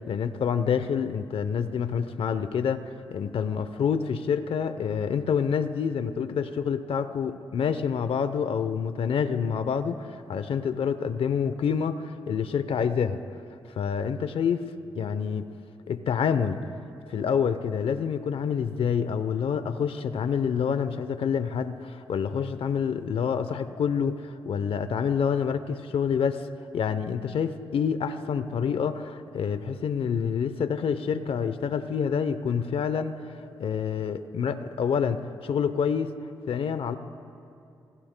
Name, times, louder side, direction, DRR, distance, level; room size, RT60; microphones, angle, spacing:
voice 1, 0.1-2.8 3.1-13.2 13.8-14.7 14.9-15.4 15.9-16.6 17.1-26.5 26.7-36.1 36.5-37.0, left 7 dB, 70° left, 11 dB, 0.7 m, -27 dB
26.0 x 17.0 x 2.2 m, 2.5 s
supercardioid pair, 50°, 10 cm